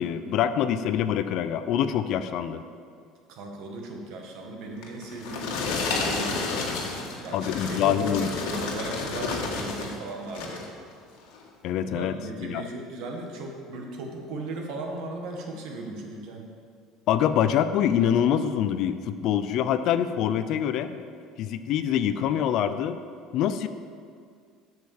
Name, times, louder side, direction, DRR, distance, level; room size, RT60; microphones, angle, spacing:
voice 1, 0.0-2.6 7.3-8.3 11.6-12.1 12.4-12.6 17.1-21.0 21.4-23.0 23.3-23.7, left 9 dB, 50° left, 11 dB, 0.4 m, -25 dB
voice 2, 3.3-6.7 7.0-10.7 11.8-16.5, right 2 dB, 55° right, 2 dB, 1.6 m, -37 dB
sound 1, 4.8-10.0 10.3-10.7 11.3-11.4, left 4 dB, 80° left, 1.7 m, -31 dB
8.2 x 6.5 x 7.1 m, 2.2 s
cardioid pair, 165°, 0 cm